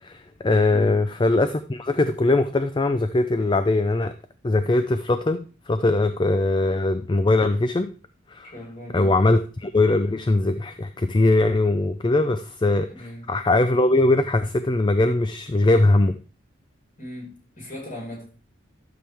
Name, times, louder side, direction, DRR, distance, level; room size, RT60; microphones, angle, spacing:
voice 1, 0.0-4.1 4.4-7.9 8.3-8.5 8.9-16.2, left 2 dB, 20° left, 0.4 m, -21 dB
voice 2, 0.7-1.0 8.5-9.3 12.9-13.3 17.0-18.3, left 1 dB, 40° left, 4.6 m, -38 dB
12.0 x 7.0 x 3.5 m
head